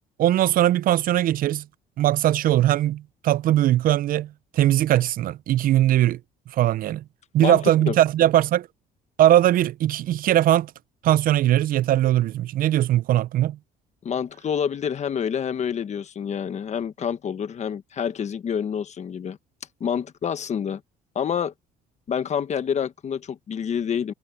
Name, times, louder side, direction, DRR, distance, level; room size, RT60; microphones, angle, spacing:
voice 1, 0.2-1.6 2.0-6.2 6.5-7.0 7.3-8.7 9.2-10.7 11.0-13.6, right 13 dB, 55° right, 0.4 m, -20 dB
voice 2, 14.0-19.4 19.8-20.8 21.1-21.5 22.1-24.1, left 7 dB, 40° left, 1.3 m, -27 dB
cardioid pair, 110°, 17 cm